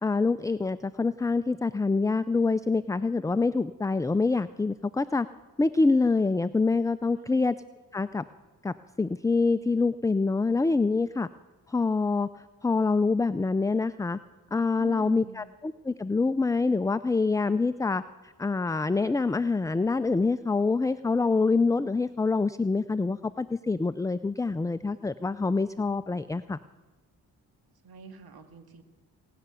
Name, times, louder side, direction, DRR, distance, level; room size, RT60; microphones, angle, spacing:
voice 1, 0.0-5.3 5.6-7.5 7.9-8.2 8.6-11.3 11.7-12.3 12.6-14.2 14.5-26.6, left 3 dB, 10° left, 13 dB, 0.3 m, -26 dB
voice 2, 14.8-15.5 27.8-28.8, right 6 dB, 70° right, 7 dB, 1.9 m, -45 dB
18.5 x 6.8 x 9.6 m, 1.3 s
cardioid pair, 60°, 39 cm